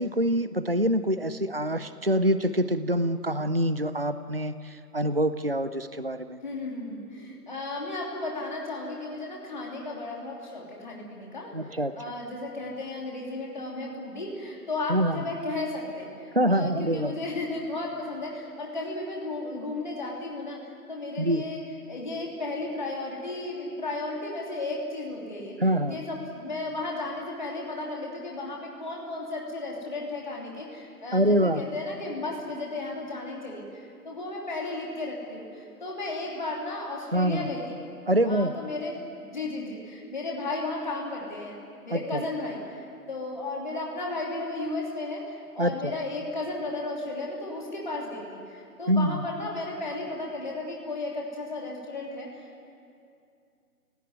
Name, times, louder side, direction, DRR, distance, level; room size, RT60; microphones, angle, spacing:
voice 1, 0.0-6.4 11.5-11.9 14.9-15.2 16.3-17.1 21.2-21.4 25.6-26.0 31.1-31.6 37.1-37.5 38.1-38.5 41.9-42.2 45.6-45.9 48.9-49.2, equal, 40° right, 13 dB, 0.6 m, -25 dB
voice 2, 6.4-37.8 38.2-39.0 39.3-41.6 41.8-52.7, left 2 dB, 30° left, -2 dB, 3.1 m, -34 dB
29.5 x 18.0 x 9.3 m, 2.4 s
figure-of-eight pair, 170°, 47 cm